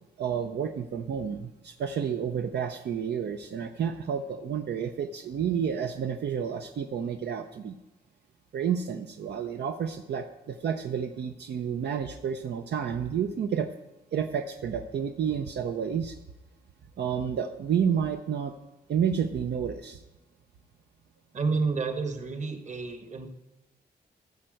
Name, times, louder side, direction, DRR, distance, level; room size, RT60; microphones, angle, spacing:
voice 1, 0.2-7.7 8.5-13.7 14.1-16.2 17.0-18.5 18.9-20.0, right 7 dB, 75° right, 6 dB, 0.7 m, -30 dB
voice 2, 21.3-23.3, right 4 dB, 45° right, 7 dB, 1.4 m, -30 dB
13.5 x 4.6 x 7.7 m, 1.0 s
wide cardioid pair, 110°, 18 cm